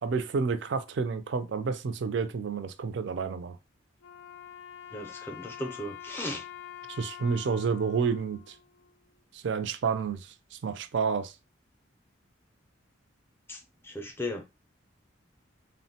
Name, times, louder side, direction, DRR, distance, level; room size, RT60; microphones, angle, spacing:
voice 1, 0.0-3.6 6.9-8.5 9.3-11.3, right 5 dB, 60° right, 0.4 m, -30 dB
Wind instrument woodwind instrument, 4.0-9.2, left 10 dB, 85° left, 0.4 m, -46 dB
voice 2, 4.9-6.5 13.5-14.4, left 1 dB, 10° left, 0.4 m, -37 dB
3.6 x 2.1 x 2.7 m
head